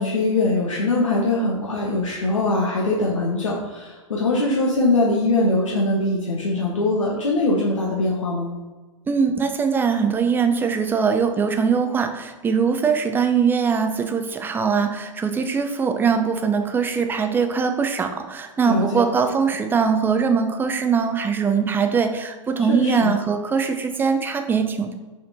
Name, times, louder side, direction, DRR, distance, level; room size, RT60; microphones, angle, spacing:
voice 1, 0.0-8.5 18.6-19.0 22.7-23.1, left 2 dB, 70° left, -3 dB, 1.2 m, -22 dB
voice 2, 9.1-24.9, right 6 dB, 10° right, 6 dB, 0.6 m, -21 dB
6.4 x 4.4 x 4.2 m, 1.2 s
figure-of-eight pair, 105°, 17 cm